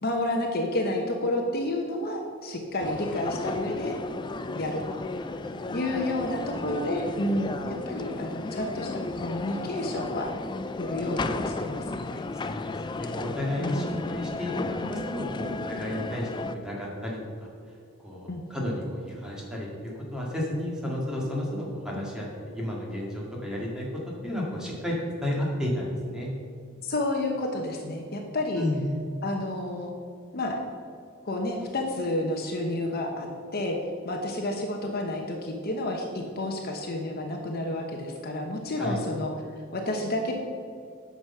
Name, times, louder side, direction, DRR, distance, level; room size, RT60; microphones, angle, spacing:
voice 1, 0.0-4.0 4.5-5.1 5.7-10.3 10.8-12.2 13.6-13.9 18.3-18.4 26.8-28.6 29.2-29.9 30.3-30.6 31.2-33.3 33.5-33.8 34.0-39.3 39.7-40.3, left 1 dB, 45° left, 2 dB, 0.9 m, -30 dB
sound 1, 2.8-16.6, left 3 dB, 20° left, 0.3 m, -34 dB
voice 2, 12.3-17.2 18.0-22.3 22.5-23.9 24.2-24.9 25.2-26.3 28.5-29.0 38.8-39.0, left 1 dB, 5° right, -4 dB, 1.9 m, -32 dB
9.3 x 6.3 x 5.6 m, 2.3 s
head